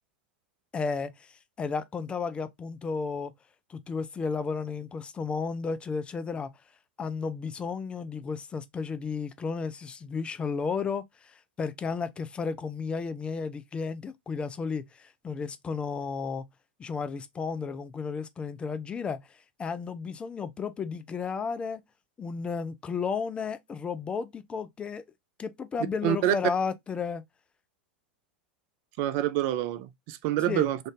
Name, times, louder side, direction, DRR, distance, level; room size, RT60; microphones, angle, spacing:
voice 1, 0.7-1.3 1.6-3.3 3.7-6.5 7.0-16.5 16.8-19.2 19.6-21.8 22.2-25.0 25.4-27.2 30.5-30.7, left 5 dB, 20° left, 0.4 m, -33 dB
voice 2, 26.0-26.3 29.0-30.8, right 13 dB, 50° right, 0.4 m, -27 dB
2.6 x 2.4 x 3.4 m
figure-of-eight pair, 90°, 5 cm